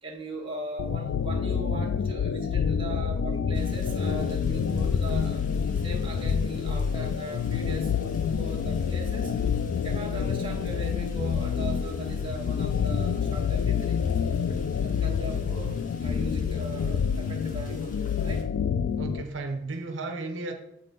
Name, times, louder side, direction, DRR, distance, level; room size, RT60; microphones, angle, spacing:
voice 1, 0.0-5.4 5.8-9.3 9.8-14.0 14.8-18.4, right 2 dB, 30° right, -1 dB, 1.4 m, -39 dB
sound 1, 0.8-19.2, left 7 dB, 85° left, 0.3 m, -27 dB
sound 2, 3.5-18.4, left 2 dB, 45° left, 1.0 m, -50 dB
voice 2, 19.0-20.5, right 3 dB, 80° right, 5 dB, 0.7 m, -34 dB
7.3 x 3.8 x 5.2 m, 0.78 s
head